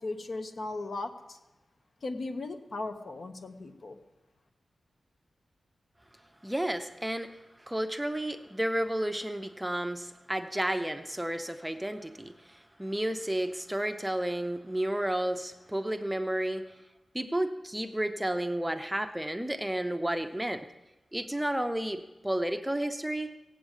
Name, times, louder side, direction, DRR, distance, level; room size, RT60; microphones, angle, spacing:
voice 1, 0.0-1.4 2.0-4.0, left 2 dB, 55° left, 7 dB, 1.3 m, -37 dB
voice 2, 6.4-16.7 17.1-20.7 21.1-23.3, right 1 dB, 5° right, 8 dB, 0.7 m, -32 dB
17.0 x 8.0 x 8.2 m, 1.1 s
wide cardioid pair, 100°, 0 cm